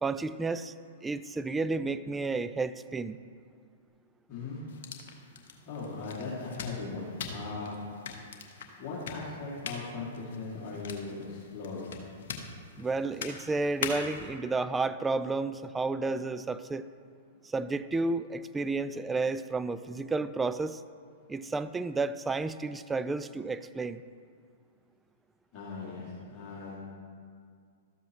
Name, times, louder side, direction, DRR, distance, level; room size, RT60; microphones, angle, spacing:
voice 1, 0.0-0.7 1.0-3.2 12.8-16.9 17.4-20.8 21.3-24.0, right 3 dB, 10° right, 13 dB, 0.3 m, -31 dB
voice 2, 4.3-4.6 5.6-7.8 8.8-12.1 25.5-26.7, left 3 dB, 40° left, -8 dB, 2.4 m, -38 dB
sound 1, 4.7-14.3, left 5 dB, 60° left, 1.1 m, -43 dB
13.0 x 7.6 x 3.1 m, 2.2 s
hypercardioid pair, 110°, 0 cm